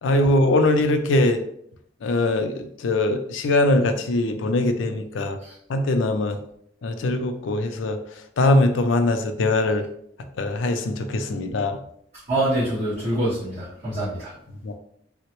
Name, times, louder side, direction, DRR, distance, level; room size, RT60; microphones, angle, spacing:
voice 1, 0.0-1.4 2.0-5.4 5.7-6.4 6.8-8.0 8.4-9.9 10.4-11.8 14.6-14.7, left 2 dB, 85° left, 7 dB, 0.4 m, -21 dB
voice 2, 12.3-14.3, right 1 dB, 35° right, -14 dB, 1.3 m, -25 dB
3.6 x 2.1 x 2.9 m, 0.69 s
head